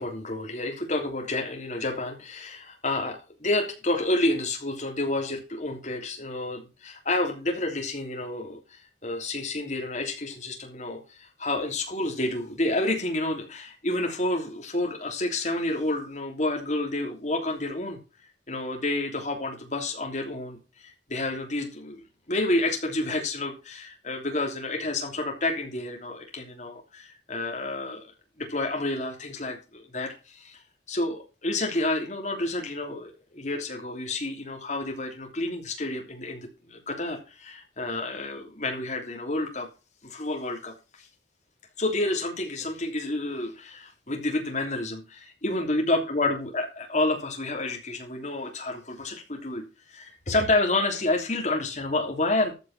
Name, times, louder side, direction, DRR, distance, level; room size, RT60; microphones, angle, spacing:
voice 1, 0.0-18.0 18.5-22.0 22.3-28.1 28.4-30.6 30.9-39.7 40.0-41.1 41.8-52.5, left 2 dB, 40° left, 2 dB, 3.1 m, -29 dB
14.0 x 5.2 x 6.1 m, 0.31 s
head